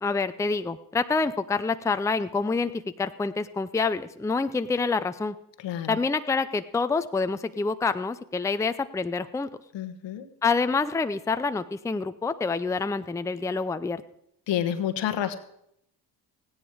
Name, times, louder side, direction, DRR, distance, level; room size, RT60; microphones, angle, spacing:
voice 1, 0.0-5.4 5.9-9.5 10.4-14.0, left 4 dB, 5° left, 11 dB, 0.5 m, -27 dB
voice 2, 5.6-6.0 9.7-10.3 14.5-15.3, left 10 dB, 70° left, 10 dB, 1.3 m, -29 dB
15.0 x 10.0 x 4.9 m, 0.76 s
supercardioid pair, 55°, 45 cm